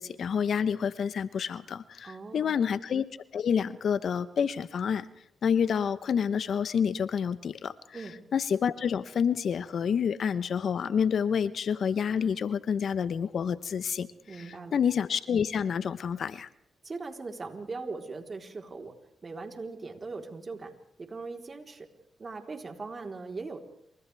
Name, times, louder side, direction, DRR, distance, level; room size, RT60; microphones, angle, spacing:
voice 1, 0.0-3.0 3.3-5.1 5.4-8.0 8.3-16.5, left 7 dB, 65° left, 14 dB, 0.9 m, -28 dB
voice 2, 2.0-2.7 7.9-8.2 14.3-14.8 16.8-18.9 19.2-20.7 21.0-21.9 22.2-23.6, right 3 dB, 40° right, 3 dB, 3.9 m, -40 dB
28.5 x 26.5 x 3.5 m, 0.70 s
supercardioid pair, 50°, 0 cm